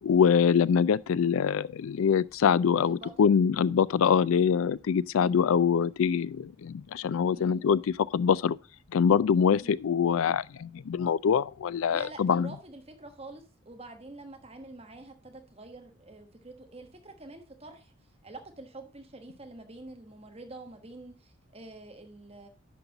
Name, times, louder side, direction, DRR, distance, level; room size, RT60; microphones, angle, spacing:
voice 1, 0.0-8.6 8.9-12.5, left 7 dB, 80° left, 0.4 m, -24 dB
voice 2, 2.9-3.3 5.1-5.3 7.3-7.6 9.6-9.8 11.9-17.9 18.2-22.5, right 2 dB, 30° right, 1.2 m, -47 dB
10.5 x 5.4 x 3.9 m
head